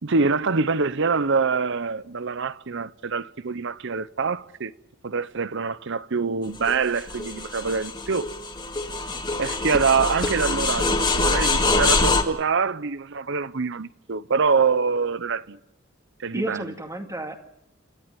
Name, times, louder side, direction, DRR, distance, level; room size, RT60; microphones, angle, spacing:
voice 1, 0.0-4.7 5.0-8.3 9.4-15.6 16.2-16.6, right 5 dB, 65° right, 0.8 m, -25 dB
sound 1, 6.5-12.2, left 3 dB, 20° left, 2.1 m, -24 dB
voice 2, 9.1-9.6 16.3-17.5, right 1 dB, 15° right, 2.2 m, -33 dB
28.5 x 13.5 x 9.1 m
head